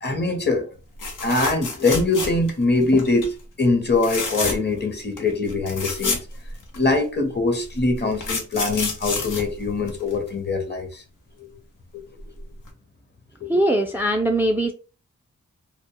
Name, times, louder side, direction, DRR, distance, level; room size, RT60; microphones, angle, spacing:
voice 1, 0.0-0.7 1.2-6.2 6.7-11.0 11.4-11.5 13.4-13.7, left 3 dB, 35° left, 0.7 m, -23 dB
sound 1, 1.0-2.6 3.0-3.3 3.9-4.8 5.2-5.3 5.5-7.0 7.8-10.3 12.2-12.4 12.7-12.8, left 3 dB, 85° left, 0.6 m, -29 dB
voice 2, 13.5-14.7, right 1 dB, 5° right, 0.3 m, -21 dB
2.1 x 2.0 x 2.8 m
cardioid pair, 55°, 30 cm